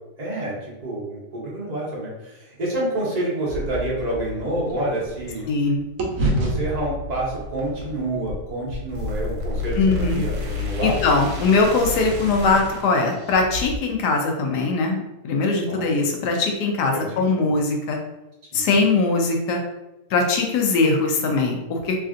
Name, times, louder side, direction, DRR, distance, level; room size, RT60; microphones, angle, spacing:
voice 1, 0.2-5.4 6.2-11.0 15.7-16.0 16.9-17.5 18.5-18.8, right 1 dB, 45° right, -4 dB, 0.5 m, -28 dB
sound 1, 3.3-5.6 6.0-10.2, right 1 dB, 65° right, 0.9 m, -30 dB
sound 2, 3.5-13.8, left 3 dB, 80° right, 1.2 m, -32 dB
voice 2, 5.5-5.8 9.8-10.2 10.8-18.0 18.5-19.6 20.1-22.0, left 3 dB, 75° left, 2 dB, 1.1 m, -21 dB
3.2 x 2.5 x 2.5 m, 0.99 s
omnidirectional pair, 1.8 m